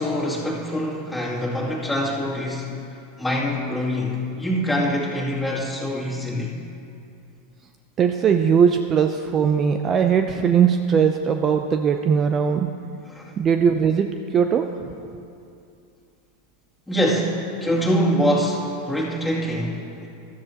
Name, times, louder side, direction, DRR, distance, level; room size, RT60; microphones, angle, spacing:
voice 1, 0.0-2.8 3.2-6.5 13.0-13.3 16.9-20.1, equal, 5° left, -5 dB, 2.6 m, -24 dB
voice 2, 8.0-12.7 13.4-14.1 14.3-15.0, right 7 dB, 35° right, 6 dB, 0.5 m, -19 dB
14.0 x 13.0 x 2.9 m, 2.6 s
hypercardioid pair, 95°, 0 cm